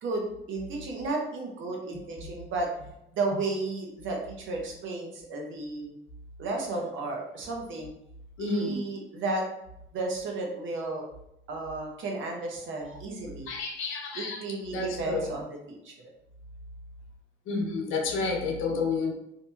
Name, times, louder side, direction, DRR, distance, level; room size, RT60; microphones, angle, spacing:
voice 1, 0.0-2.7 3.1-5.9 6.4-7.9 8.4-9.5 9.9-11.0 11.5-13.5 14.1-15.9, right 3 dB, 75° right, 1 dB, 0.8 m, -33 dB
voice 2, 8.4-8.8 13.5-14.4 14.7-15.3 17.5-19.1, left 4 dB, 85° left, 1 dB, 0.7 m, -30 dB
2.8 x 2.7 x 2.3 m, 0.82 s
cardioid pair, 90°, 20 cm